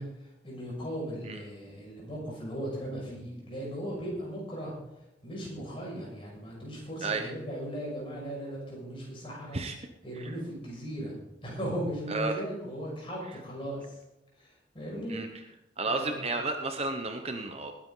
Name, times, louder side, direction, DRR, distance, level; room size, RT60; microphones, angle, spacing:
voice 1, 0.0-4.8 5.2-9.6 10.0-11.1 11.4-14.0 14.4-15.2 15.9-16.3, equal, 30° left, -3 dB, 6.1 m, -37 dB
voice 2, 15.8-17.7, right 3 dB, 30° right, 5 dB, 0.9 m, -32 dB
20.0 x 10.0 x 4.0 m, 0.93 s
head